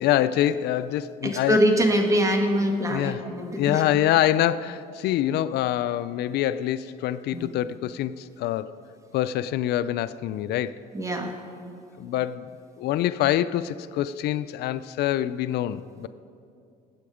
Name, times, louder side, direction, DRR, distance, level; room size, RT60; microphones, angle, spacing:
voice 1, 0.0-1.6 2.9-3.2 3.6-8.7 9.1-10.8 12.0-12.5 12.8-16.1, left 12 dB, 75° left, 0.4 m, -25 dB
voice 2, 1.2-3.8 7.3-7.5 10.9-11.3, equal, 20° right, 1.6 m, -23 dB
20.0 x 8.6 x 5.0 m
cardioid pair, 110°, 17 cm